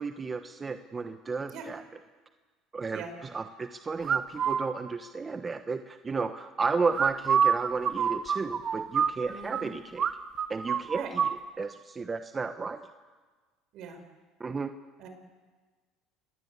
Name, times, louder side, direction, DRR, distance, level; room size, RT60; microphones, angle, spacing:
voice 1, 0.0-1.8 2.7-10.1 10.5-11.2 11.6-12.8 14.4-14.7, right 4 dB, 25° right, 8 dB, 1.1 m, -33 dB
sound 1, 4.0-4.6 6.9-9.6 10.0-10.1 10.4-11.4, right 7 dB, 40° right, 1.5 m, -26 dB
voice 2, 9.3-9.8 10.9-11.1 13.7-14.0 15.0-15.1, right 5 dB, 60° right, 7 dB, 5.3 m, -41 dB
27.0 x 21.0 x 8.4 m, 1.4 s
supercardioid pair, 100°, 0 cm